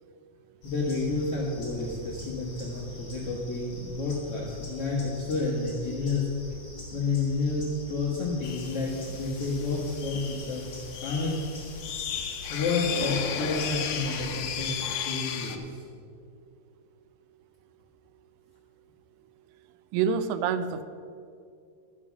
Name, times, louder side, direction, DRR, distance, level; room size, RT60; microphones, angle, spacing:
voice 1, 0.6-6.3 6.9-10.6 11.0-11.4 12.5-15.8, left 3 dB, 70° left, -5 dB, 1.4 m, -30 dB
sound 1, 0.6-14.7, left 2 dB, 25° left, 3.7 m, -44 dB
sound 2, 8.4-15.6, left 8 dB, 90° left, 1.8 m, -35 dB
voice 2, 19.9-20.8, right 6 dB, 85° right, 11 dB, 2.7 m, -26 dB
12.0 x 7.6 x 6.0 m, 2.4 s
omnidirectional pair, 4.8 m